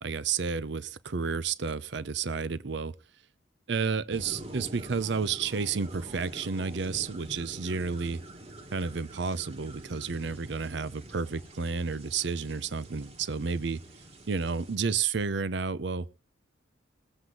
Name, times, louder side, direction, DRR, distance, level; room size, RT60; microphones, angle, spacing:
voice 1, 0.0-2.9 3.7-8.2 8.7-13.8 14.3-16.1, right 5 dB, 60° right, 0.6 m, -31 dB
sound 1, 4.1-14.8, right 1 dB, 30° right, 1.4 m, -46 dB
20.5 x 7.8 x 3.8 m
head